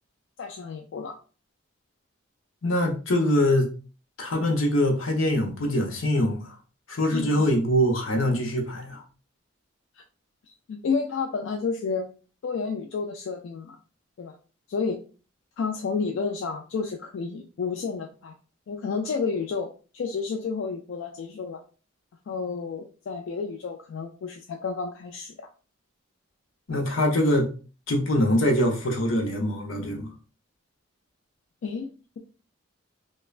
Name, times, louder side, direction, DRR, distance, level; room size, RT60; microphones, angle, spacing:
voice 1, 0.4-1.2 7.1-7.3 10.7-12.1 12.4-13.8 14.2-14.3 14.7-15.0 15.6-18.3 18.7-21.6 22.3-25.3 31.6-32.2, left 5 dB, 65° left, 0.3 m, -31 dB
voice 2, 2.6-3.7 4.2-6.5 6.9-9.0 26.7-27.5 27.9-30.1, left 1 dB, 85° left, 0.7 m, -23 dB
2.4 x 2.2 x 3.1 m
head